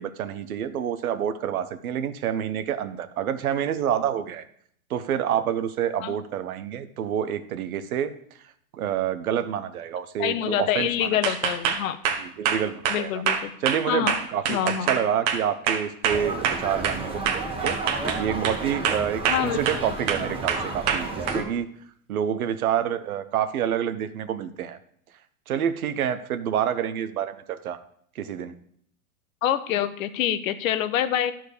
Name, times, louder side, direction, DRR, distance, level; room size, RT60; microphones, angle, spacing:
voice 1, 0.0-4.4 4.9-8.1 8.7-11.1 12.2-13.2 13.6-17.7 18.2-21.7 22.1-24.8 25.5-27.8 28.1-28.5, right 9 dB, 85° right, 11 dB, 1.0 m, -28 dB
voice 2, 10.2-12.0 12.9-13.5 13.9-14.2 14.5-14.9 19.3-19.8 29.4-31.3, left 10 dB, 70° left, 12 dB, 1.0 m, -26 dB
sound 1, 11.2-17.0 17.3-18.6 18.8-19.8 20.1-21.4, right 7 dB, 55° right, 1.4 m, -25 dB
sound 2, 16.1-21.4, right 3 dB, 15° right, 1.4 m, -32 dB
11.5 x 4.6 x 6.7 m, 0.66 s
supercardioid pair, 135°, 42 cm